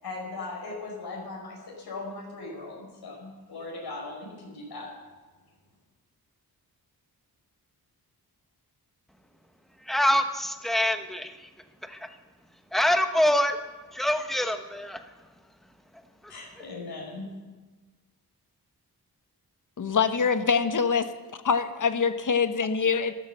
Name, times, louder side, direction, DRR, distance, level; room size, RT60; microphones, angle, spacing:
voice 1, 0.0-4.9 16.3-17.3, left 3 dB, 75° left, -2 dB, 5.1 m, -39 dB
voice 2, 9.9-11.3 11.9-12.0 12.7-13.6 13.9-15.0, left 1 dB, ahead, 7 dB, 1.2 m, -25 dB
voice 3, 19.8-21.1 21.4-23.1, left 6 dB, 55° left, 10 dB, 1.1 m, -24 dB
13.5 x 11.5 x 6.8 m, 1.3 s
cardioid pair, 85°, 38 cm